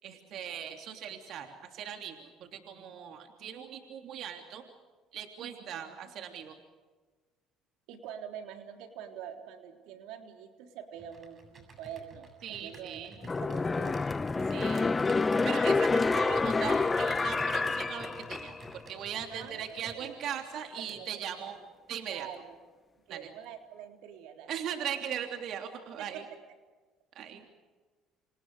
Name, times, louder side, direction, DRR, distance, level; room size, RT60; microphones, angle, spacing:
voice 1, 0.0-4.6 5.1-6.6 12.4-13.1 14.5-14.8 15.4-21.6 21.9-22.3 23.1-23.3 24.5-26.2 27.1-27.4, right 9 dB, 60° right, 4 dB, 3.2 m, -39 dB
voice 2, 5.4-5.8 7.9-15.0 19.3-20.2 20.7-21.5 22.1-22.6 23.1-25.1 26.0-26.2, right 9 dB, 80° right, 4 dB, 3.5 m, -46 dB
Computer keyboard, 11.0-20.0, right 3 dB, 35° right, 7.8 m, -53 dB
sound 1, 13.2-18.8 19.2-19.3, left 3 dB, 20° left, 0.7 m, -28 dB
28.5 x 27.5 x 5.0 m, 1.3 s
supercardioid pair, 90°, 0 cm